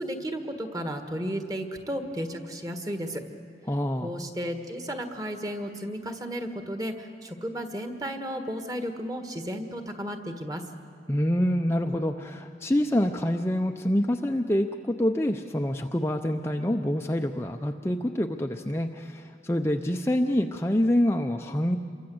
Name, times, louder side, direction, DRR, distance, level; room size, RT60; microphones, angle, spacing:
voice 1, 0.0-3.2 4.0-10.6, equal, 20° right, 6 dB, 1.7 m, -33 dB
voice 2, 3.7-4.1 11.1-21.8, left 1 dB, 15° left, 4 dB, 0.6 m, -26 dB
27.5 x 23.5 x 7.9 m, 2.3 s
head